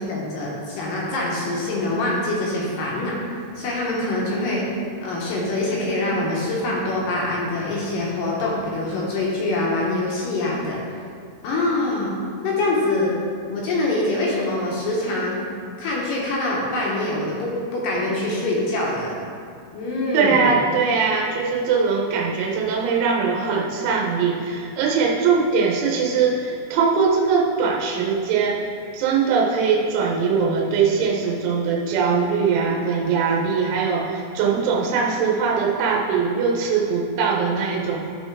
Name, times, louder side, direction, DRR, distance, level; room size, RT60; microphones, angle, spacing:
voice 1, 0.0-4.6 5.0-10.8 11.4-12.1 12.4-13.1 13.5-15.4 15.8-19.2 19.7-20.5, left 2 dB, 65° left, -4 dB, 2.3 m, -24 dB
voice 2, 20.1-28.7 28.9-38.1, right 5 dB, 85° right, -2 dB, 3.3 m, -21 dB
12.5 x 4.5 x 4.6 m, 2.3 s
omnidirectional pair, 5.2 m